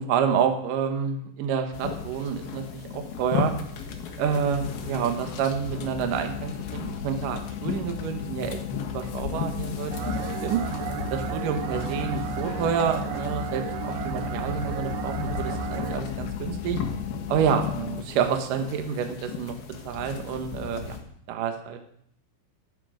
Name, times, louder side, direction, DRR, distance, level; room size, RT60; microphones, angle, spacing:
voice 1, 0.0-2.6 2.9-3.5 4.2-10.2 10.4-10.6 11.1-16.8 17.3-19.6 19.9-21.0 21.3-21.8, right 7 dB, 65° right, 6 dB, 2.2 m, -28 dB
sound 1, 1.7-21.0, left 6 dB, 60° left, 2.9 m, -36 dB
sound 2, 5.8-18.0, left 11 dB, 85° left, 2.4 m, -36 dB
sound 3, 9.9-16.0, right 9 dB, 90° right, 2.2 m, -33 dB
15.0 x 12.0 x 5.2 m, 0.69 s
omnidirectional pair, 5.7 m